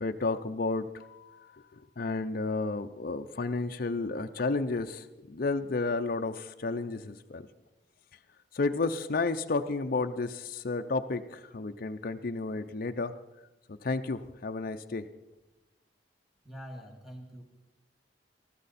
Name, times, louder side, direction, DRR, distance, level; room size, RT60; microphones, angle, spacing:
voice 1, 0.0-7.5 8.5-13.1 13.7-15.0, left 3 dB, 55° left, 6 dB, 0.6 m, -32 dB
voice 2, 16.4-17.4, equal, ahead, 2 dB, 2.1 m, -44 dB
19.5 x 14.0 x 4.2 m, 0.99 s
head